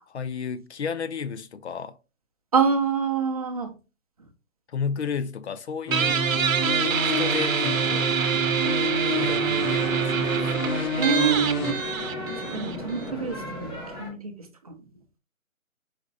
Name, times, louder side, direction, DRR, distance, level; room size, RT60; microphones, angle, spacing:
voice 1, 0.1-2.0 4.7-6.3 7.0-8.1 9.2-10.5, left 6 dB, 55° left, 0.6 m, -32 dB
voice 2, 2.5-3.7 11.0-11.8 12.4-14.7, right 6 dB, 25° right, 0.6 m, -26 dB
sound 1, 5.9-11.7, equal, 75° left, 1.5 m, -28 dB
Guitar, 5.9-13.1, right 7 dB, 70° right, 0.8 m, -26 dB
sound 2, 8.4-14.1, left 1 dB, 15° left, 0.9 m, -36 dB
5.1 x 4.3 x 2.3 m
hypercardioid pair, 155°, 42 cm